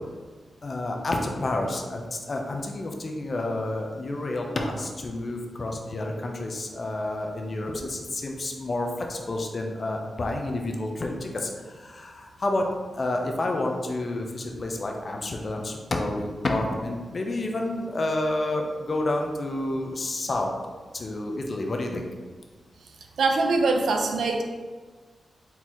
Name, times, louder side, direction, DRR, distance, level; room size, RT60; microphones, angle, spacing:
voice 1, 0.6-12.7 12.9-20.5 20.9-22.0, left 2 dB, 40° left, 2 dB, 0.6 m, -29 dB
voice 2, 23.2-24.4, right 3 dB, 90° right, 3 dB, 0.5 m, -23 dB
4.3 x 3.9 x 3.0 m, 1.4 s
wide cardioid pair, 120°, 0 cm